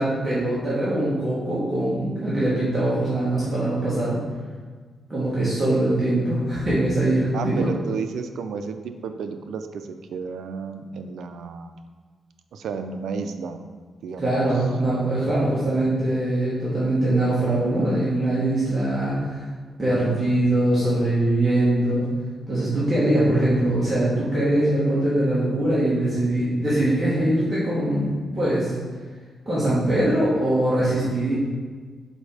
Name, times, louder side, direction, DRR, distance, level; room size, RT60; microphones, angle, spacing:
voice 1, 0.0-4.2 5.1-7.7 14.2-19.4 19.8-22.1 22.5-28.7 29.4-31.3, right 1 dB, 15° right, -10 dB, 1.4 m, -22 dB
voice 2, 7.3-11.9 12.5-13.6 14.0-14.5, right 5 dB, 70° right, 8 dB, 0.5 m, -32 dB
5.3 x 4.2 x 4.9 m, 1.5 s
wide cardioid pair, 180°, 0 cm